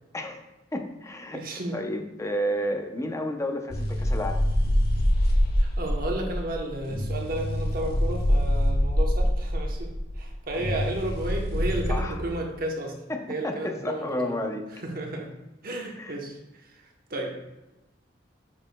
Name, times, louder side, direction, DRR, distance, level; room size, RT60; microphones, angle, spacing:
voice 1, 0.7-1.4 1.7-4.4 11.9-12.2 13.1-14.6 16.0-16.1, equal, 15° left, 5 dB, 0.6 m, -31 dB
voice 2, 1.3-1.8 5.6-13.0 13.3-14.4 14.8-15.3 15.6-16.7 17.1-17.4, right 1 dB, 50° right, 1 dB, 0.9 m, -33 dB
sound 1, 3.7-11.9, equal, 55° left, 1.2 m, -25 dB
7.5 x 6.4 x 2.2 m, 0.99 s
head